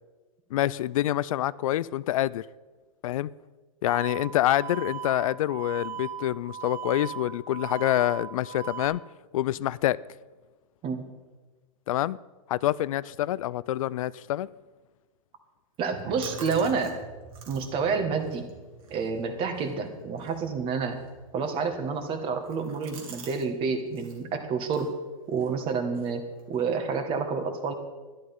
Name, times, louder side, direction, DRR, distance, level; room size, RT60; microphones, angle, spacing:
voice 1, 0.5-2.5 3.0-3.3 3.8-9.0 9.3-10.0 11.9-12.2 12.5-14.5, left 14 dB, 75° left, 0.4 m, -26 dB
sound 1, 3.9-8.9, right 8 dB, 15° right, 0.9 m, -38 dB
sound 2, 15.7-23.5 23.7-24.2 24.6-27.0, right 4 dB, 85° right, 2.9 m, -51 dB
voice 2, 15.8-17.0 17.5-18.5 18.9-21.0 21.3-24.9 25.3-27.7, right 5 dB, 30° right, 1.7 m, -29 dB
sound 3, 15.9-24.4, right 5 dB, 50° right, 1.9 m, -50 dB
11.5 x 11.5 x 5.5 m
supercardioid pair, 150°, 18 cm